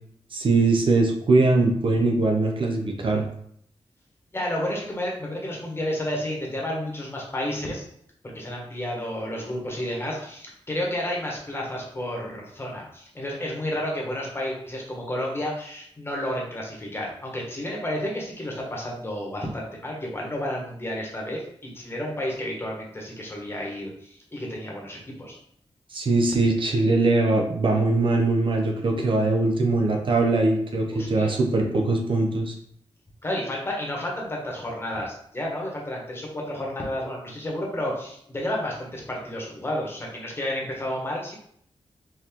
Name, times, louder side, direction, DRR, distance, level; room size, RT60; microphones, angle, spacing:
voice 1, 0.3-3.2 25.9-32.5, right 2 dB, 55° right, 2 dB, 0.7 m, -21 dB
voice 2, 4.3-7.8 8.3-25.4 30.9-31.3 33.2-41.4, left 1 dB, 25° left, -2 dB, 1.2 m, -31 dB
4.6 x 2.9 x 3.6 m, 0.67 s
wide cardioid pair, 120°, 10 cm